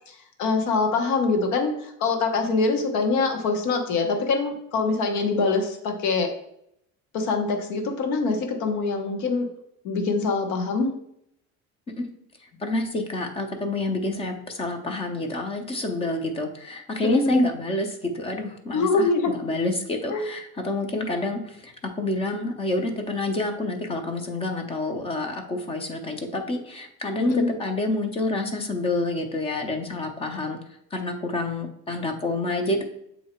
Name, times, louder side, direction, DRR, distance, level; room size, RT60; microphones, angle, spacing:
voice 1, 0.1-6.3 7.1-9.5 9.8-10.9 17.1-17.5 18.7-19.3 20.1-20.3 27.2-27.5, left 4 dB, 65° left, 4 dB, 1.1 m, -24 dB
voice 2, 12.6-30.6 30.9-32.8, left 2 dB, 20° left, 5 dB, 0.6 m, -28 dB
7.8 x 2.8 x 4.4 m, 0.76 s
cardioid pair, 165°, 31 cm